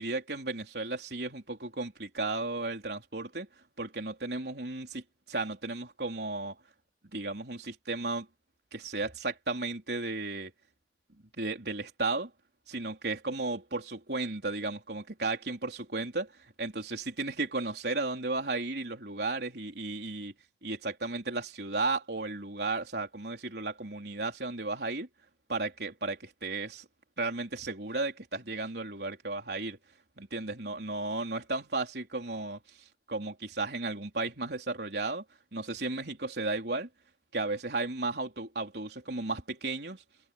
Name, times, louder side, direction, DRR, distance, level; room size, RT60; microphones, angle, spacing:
voice 1, 0.0-3.5 3.8-6.6 7.1-8.3 8.7-10.5 11.2-12.3 12.7-20.3 20.6-25.1 25.5-26.8 27.2-29.8 30.2-32.6 33.1-35.2 35.5-36.9 37.3-40.0, right 3 dB, 65° right, 3.9 m, -34 dB
head